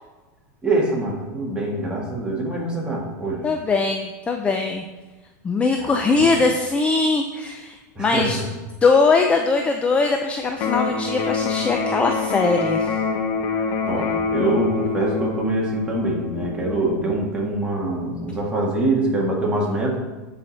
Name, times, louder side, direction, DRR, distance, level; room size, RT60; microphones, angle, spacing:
voice 1, 0.6-3.4 5.8-6.4 8.0-8.5 13.5-20.0, right 2 dB, 10° right, -3 dB, 1.9 m, -24 dB
voice 2, 3.4-4.8 5.4-8.4 8.8-12.9, left 4 dB, 15° left, 4 dB, 0.4 m, -21 dB
Electric guitar, 10.5-18.5, left 5 dB, 45° left, 1.0 m, -26 dB
9.4 x 4.8 x 4.1 m, 1.2 s
supercardioid pair, 145°, 9 cm